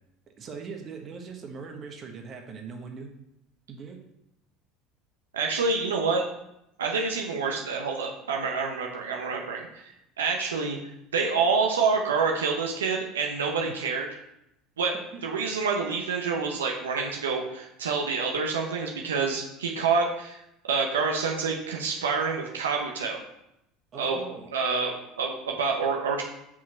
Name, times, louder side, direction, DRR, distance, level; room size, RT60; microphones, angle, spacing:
voice 1, 0.4-3.1 3.7-4.0 13.7-13.8 15.1-15.3 23.9-24.5, right 5 dB, 45° right, 4 dB, 1.2 m, -40 dB
voice 2, 5.3-6.3 6.8-10.8 11.1-14.1 14.8-20.4 20.7-23.2 24.0-26.2, right 4 dB, 85° right, 0 dB, 0.9 m, -27 dB
5.9 x 4.9 x 4.3 m, 0.82 s
hypercardioid pair, 75°, 0 cm